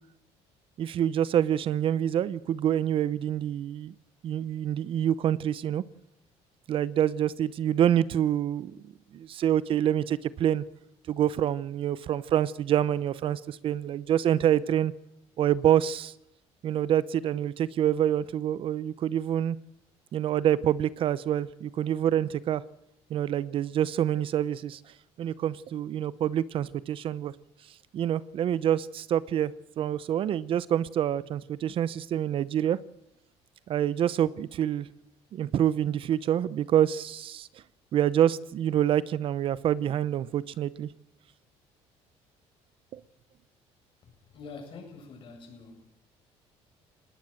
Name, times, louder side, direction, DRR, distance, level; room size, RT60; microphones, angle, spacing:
voice 1, 0.8-3.9 4.2-5.8 6.7-8.8 9.1-10.6 11.1-14.9 15.4-16.1 16.6-19.6 20.1-22.6 23.1-24.8 25.2-27.3 27.9-29.5 29.8-32.8 33.7-34.9 35.3-37.5 37.9-40.9 42.9-43.0, right 10 dB, 50° right, 18 dB, 0.7 m, -26 dB
voice 2, 44.3-45.8, left 4 dB, 50° left, 3 dB, 7.9 m, -45 dB
20.0 x 19.0 x 7.6 m, 0.83 s
cardioid pair, 125°, 12 cm